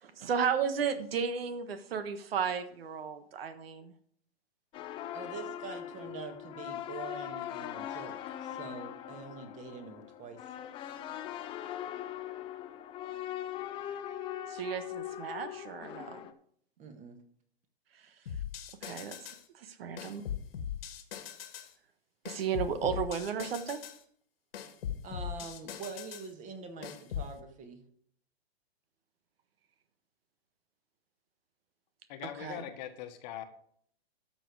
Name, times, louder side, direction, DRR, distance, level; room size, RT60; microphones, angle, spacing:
voice 1, 0.0-3.9 14.5-16.2 18.8-20.2 22.2-23.8 32.4-32.6, right 7 dB, 65° right, 10 dB, 1.4 m, -34 dB
sound 1, 4.7-16.3, left 11 dB, 15° left, 0.5 m, -41 dB
voice 2, 5.1-10.4 16.8-17.2 25.0-27.8, right 5 dB, 25° right, 6 dB, 1.7 m, -45 dB
sound 2, 18.3-19.4 20.0-21.7 22.3-24.0 24.5-26.3 26.8-27.3, left 9 dB, 65° left, 1.7 m, -40 dB
voice 3, 32.1-33.4, left 11 dB, 40° left, 7 dB, 1.4 m, -41 dB
12.5 x 6.8 x 4.7 m, 0.63 s
hypercardioid pair, 140°, 32 cm